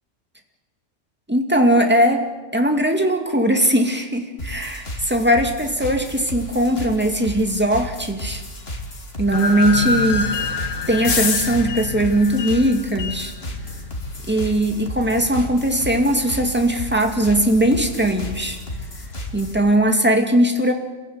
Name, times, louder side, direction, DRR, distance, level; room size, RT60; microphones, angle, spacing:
voice 1, 1.3-2.2 2.5-8.4 9.2-10.3 10.9-13.3 14.3-18.6 19.3-20.7, right 1 dB, 10° right, 4 dB, 2.3 m, -19 dB
sound 1, 4.4-19.6, equal, 50° left, 2.8 m, -33 dB
sound 2, 9.3-13.3, left 3 dB, 85° left, 1.7 m, -27 dB
sound 3, 9.7-19.7, left 5 dB, 70° left, 1.8 m, -32 dB
27.5 x 16.0 x 9.5 m, 1.3 s
omnidirectional pair, 1.3 m